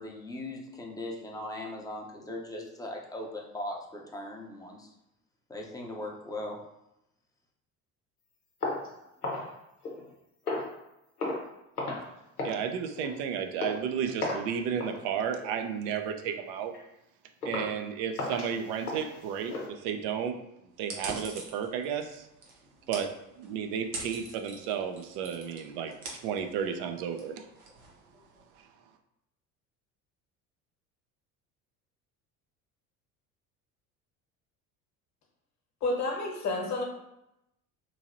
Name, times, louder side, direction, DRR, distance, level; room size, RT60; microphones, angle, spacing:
voice 1, 0.0-4.9 5.5-6.6, left 1 dB, 10° left, -1 dB, 0.7 m, -39 dB
sound 1, 8.6-10.1 10.4-10.8 11.2-11.5 11.8-12.1 12.4-12.6 13.0-13.2 13.6-13.8 14.2-14.5 14.8-15.0 15.4-15.7 16.1-16.2 16.7-16.8 17.4-17.7 18.1-19.7, left 2 dB, 90° left, 0.7 m, -35 dB
voice 2, 12.4-16.7 17.4-20.4 20.8-22.3 22.9-23.1 23.4-25.9 26.2-27.5, right 7 dB, 50° right, 6 dB, 0.5 m, -33 dB
sound 2, 20.8-28.5, right 3 dB, 80° right, 0.8 m, -45 dB
voice 3, 35.8-36.8, left 2 dB, 40° left, 0 dB, 1.1 m, -30 dB
3.0 x 2.7 x 2.5 m, 0.86 s
figure-of-eight pair, 60°, 44 cm